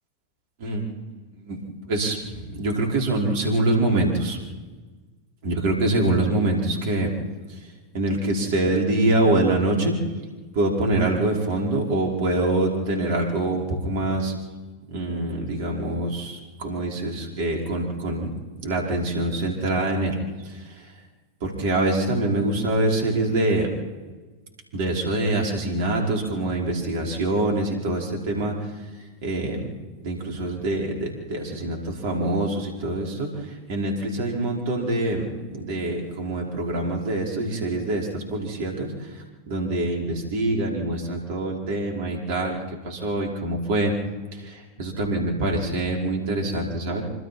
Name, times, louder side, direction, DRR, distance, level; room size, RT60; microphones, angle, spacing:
voice 1, 1.9-4.4 5.4-7.1 7.9-10.0 10.5-14.3 14.9-18.3 18.6-20.2 21.4-23.7 24.7-28.7 29.2-29.7 30.0-33.3 33.7-35.3 35.5-38.9 39.5-42.6 42.8-43.9 44.4-47.0, right 2 dB, 50° right, 0 dB, 5.2 m, -25 dB
26.5 x 25.5 x 4.4 m, 1.3 s
figure-of-eight pair, 90°, 0 cm